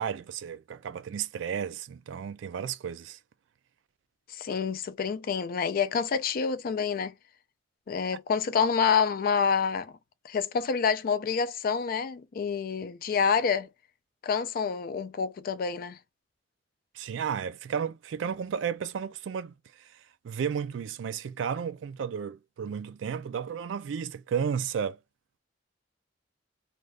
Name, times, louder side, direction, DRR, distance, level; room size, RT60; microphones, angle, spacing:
voice 1, 0.0-3.2 16.9-19.9 20.2-25.0, right 7 dB, 80° right, 0.3 m, -33 dB
voice 2, 4.3-7.1 7.9-9.9 10.2-13.7 14.2-16.0, left 6 dB, 50° left, 0.4 m, -27 dB
2.5 x 2.3 x 3.2 m
head